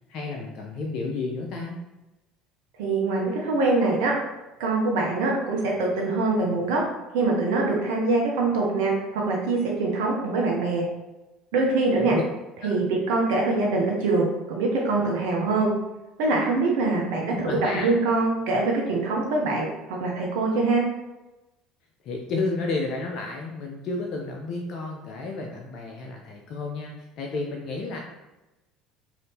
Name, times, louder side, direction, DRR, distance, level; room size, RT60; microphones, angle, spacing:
voice 1, 0.1-1.8 12.0-12.2 12.6-12.9 17.3-17.9 22.0-28.0, left 3 dB, 55° left, 1 dB, 0.4 m, -31 dB
voice 2, 2.8-4.1 4.6-6.8 7.1-10.9 11.5-12.2 12.6-15.7 16.2-20.8, right 3 dB, 70° right, -1 dB, 0.6 m, -24 dB
2.7 x 2.6 x 3.4 m, 1.0 s
hypercardioid pair, 65°, 0 cm